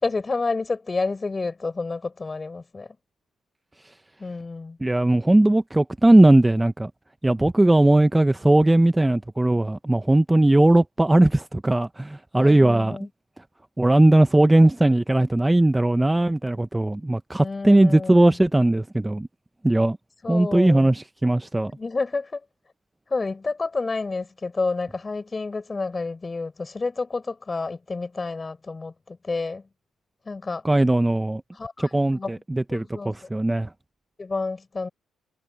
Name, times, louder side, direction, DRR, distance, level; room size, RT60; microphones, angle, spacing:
voice 1, 0.0-2.9 4.2-4.8 12.3-13.1 17.4-18.4 20.2-20.9 21.8-22.4 23.1-29.7 30.2-30.6 31.5-32.3 32.7-33.3 34.2-34.9, left 3 dB, 25° left, 4.8 m, -29 dB
voice 2, 4.8-6.9 7.2-13.0 13.8-19.3 19.6-20.0 20.3-21.7 30.6-31.4 31.8-33.7, right 1 dB, 10° right, 0.7 m, -18 dB
cardioid pair, 90°, 0 cm